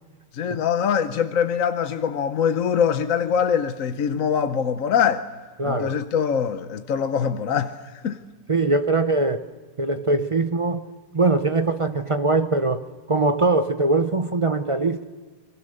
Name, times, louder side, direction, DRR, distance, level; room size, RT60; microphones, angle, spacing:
voice 1, 0.3-5.3 5.6-7.7 8.0-8.2, left 7 dB, 60° left, 1.2 m, -23 dB
voice 2, 5.6-6.0 8.5-9.4 9.8-10.8 11.1-12.8 13.1-15.0, right 3 dB, 40° right, 0.4 m, -22 dB
29.5 x 23.0 x 6.6 m
omnidirectional pair, 1.8 m